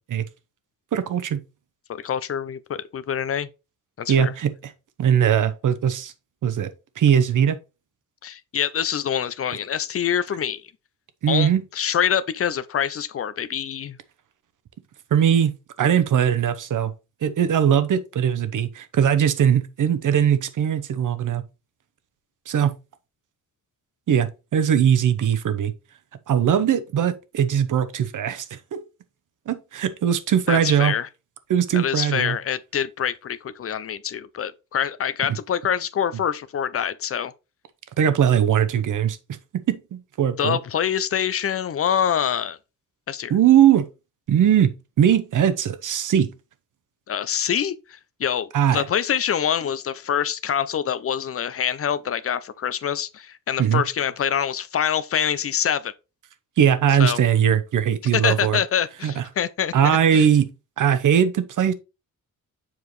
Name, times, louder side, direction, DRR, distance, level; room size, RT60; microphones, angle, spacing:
voice 1, 0.9-1.4 4.1-4.7 5.0-6.1 6.4-6.7 7.0-7.6 11.2-11.6 15.1-15.5 15.8-16.9 17.2-21.4 22.5-22.7 24.1-25.7 26.3-28.8 29.5-30.9 31.5-32.4 38.0-39.2 39.7-40.6 43.3-43.9 44.3-46.3 48.5-48.8 53.6-53.8 56.6-58.6 59.0-59.2 59.7-60.5 60.8-61.7, right 9 dB, 65° right, 0.9 m, -20 dB
voice 2, 1.9-3.5 4.0-4.3 8.2-10.6 11.3-14.0 30.5-31.1 31.7-37.3 40.4-42.6 43.1-43.3 47.1-55.9 57.0-57.2 58.1-59.7 60.1-60.3, left 8 dB, 45° left, 0.4 m, -25 dB
7.3 x 4.6 x 3.2 m
wide cardioid pair, 145°, 34 cm